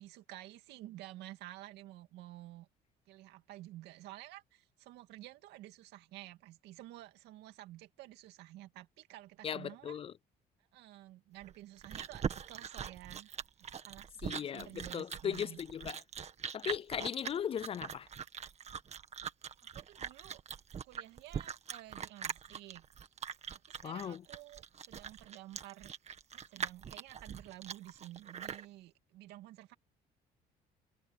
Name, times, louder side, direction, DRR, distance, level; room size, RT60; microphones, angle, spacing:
voice 1, 0.0-2.7 3.1-10.0 10.7-13.3 13.6-15.6 19.7-20.4 20.8-22.8 23.5-25.9 26.3-29.7, right 16 dB, 85° right, 2.3 m, -51 dB
voice 2, 9.4-10.1 14.2-16.0 16.5-18.1 23.8-24.2, left 8 dB, 35° left, 0.4 m, -38 dB
Chewing mastication, 11.4-28.7, right 7 dB, 40° right, 1.8 m, -42 dB
cardioid pair, 110°, 17 cm